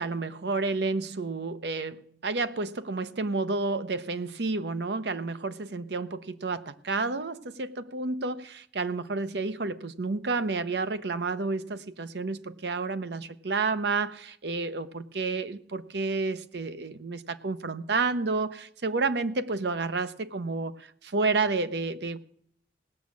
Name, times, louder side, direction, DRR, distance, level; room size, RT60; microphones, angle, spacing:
voice 1, 0.0-22.2, right 3 dB, 65° right, 12 dB, 0.7 m, -30 dB
17.5 x 6.3 x 8.3 m, 0.67 s
head